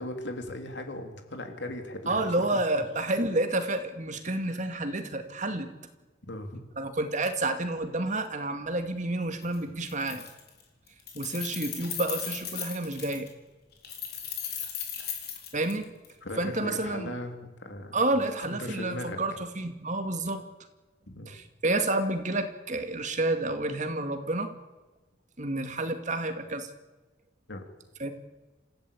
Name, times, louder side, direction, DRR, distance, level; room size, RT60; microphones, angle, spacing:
voice 1, 0.0-2.4 6.3-6.6 16.2-19.2 21.1-21.3 27.5-27.7, left 1 dB, 75° left, 5 dB, 3.2 m, -38 dB
voice 2, 2.1-5.7 6.8-10.2 11.1-13.3 15.5-15.9 16.4-17.1 17.9-20.5 21.3-24.5 25.4-26.7 28.0-28.1, right 2 dB, 45° right, 7 dB, 2.3 m, -29 dB
Keys jangling, 9.4-9.5 9.8-10.6 10.9-13.3 13.8-16.1, left 8 dB, 60° left, 4.4 m, -37 dB
27.0 x 15.5 x 8.6 m, 1.2 s
head